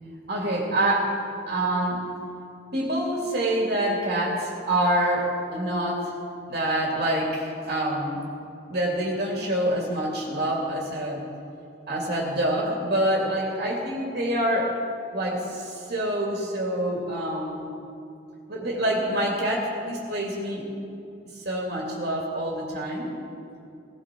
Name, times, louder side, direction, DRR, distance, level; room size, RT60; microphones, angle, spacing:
voice 1, 0.3-1.2 1.5-2.0 2.7-6.1 6.5-8.2 8.7-11.2 11.9-14.7 15.1-17.7 18.5-20.7 21.3-23.1, right 1 dB, 55° right, -2 dB, 2.5 m, -26 dB
17.5 x 17.5 x 4.5 m, 2.6 s
head